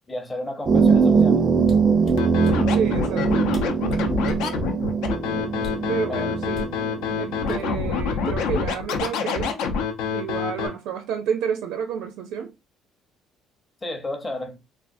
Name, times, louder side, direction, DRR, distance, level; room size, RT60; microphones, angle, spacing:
voice 1, 0.1-1.4 6.1-6.3 13.8-14.6, left 1 dB, 15° left, 0.6 m, -32 dB
sound 1, 0.7-7.6, right 5 dB, 30° right, 0.4 m, -22 dB
sound 2, 1.6-2.6 3.2-3.3 3.5-4.5 5.6-5.9 6.5-6.8 7.5-7.9 8.3-8.6, left 2 dB, 35° left, 0.9 m, -37 dB
Scratching (performance technique), 2.2-10.7, left 5 dB, 85° left, 0.6 m, -26 dB
voice 2, 2.7-3.5 5.9-6.7 7.2-9.6 10.1-12.5, right 7 dB, 90° right, 0.5 m, -30 dB
3.5 x 2.4 x 2.6 m
cardioid pair, 180°, 0 cm